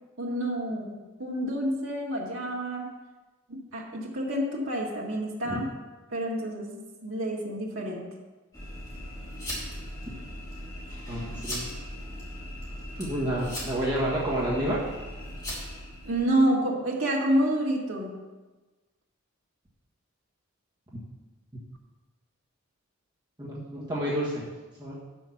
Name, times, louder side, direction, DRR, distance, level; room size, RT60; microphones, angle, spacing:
voice 1, 0.2-2.9 3.5-5.7 6.1-8.1 16.0-18.2, right 1 dB, 70° right, -3 dB, 1.8 m, -28 dB
sound 1, 8.5-16.3, equal, 20° left, 2.7 m, -38 dB
voice 2, 11.1-11.7 13.0-14.8 23.4-24.4 24.8-24.9, right 1 dB, 20° right, -7 dB, 1.5 m, -29 dB
8.1 x 6.3 x 5.8 m, 1.2 s
head